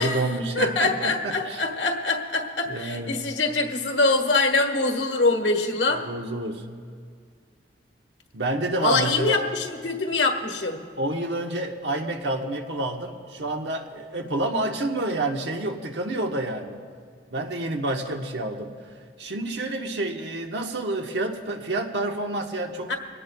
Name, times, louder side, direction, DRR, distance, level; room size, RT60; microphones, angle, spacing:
voice 1, 0.0-1.6 2.7-3.3 6.0-6.7 8.3-9.4 11.0-16.9 17.3-18.7 19.2-23.0, right 2 dB, 90° right, 3 dB, 1.2 m, -29 dB
voice 2, 0.5-6.0 8.8-10.8 22.9-23.0, left 3 dB, 85° left, 3 dB, 1.5 m, -24 dB
23.0 x 18.0 x 2.3 m, 2.1 s
head